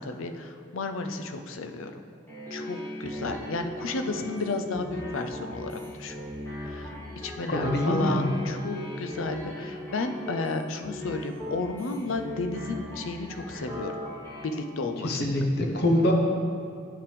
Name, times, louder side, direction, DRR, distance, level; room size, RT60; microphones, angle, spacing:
voice 1, 0.0-1.9 2.5-6.2 6.6-13.9 14.4-15.2, left 3 dB, 85° left, 7 dB, 0.5 m, -33 dB
sound 1, 2.3-14.4, left 1 dB, 10° left, 1.3 m, -38 dB
voice 2, 7.5-8.3 15.0-16.1, left 1 dB, 55° left, 1 dB, 0.8 m, -24 dB
9.3 x 5.8 x 3.4 m, 2.4 s
head